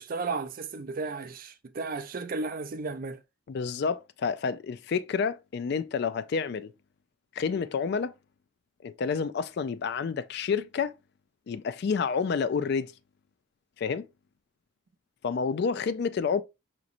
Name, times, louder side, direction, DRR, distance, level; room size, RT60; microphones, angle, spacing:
voice 1, 0.0-3.2, right 3 dB, 45° right, 0.4 m, -34 dB
voice 2, 3.5-6.7 7.4-8.1 8.8-10.9 11.5-12.9 13.8-14.1 15.2-16.4, left 5 dB, 55° left, 0.3 m, -29 dB
5.0 x 3.0 x 2.5 m
head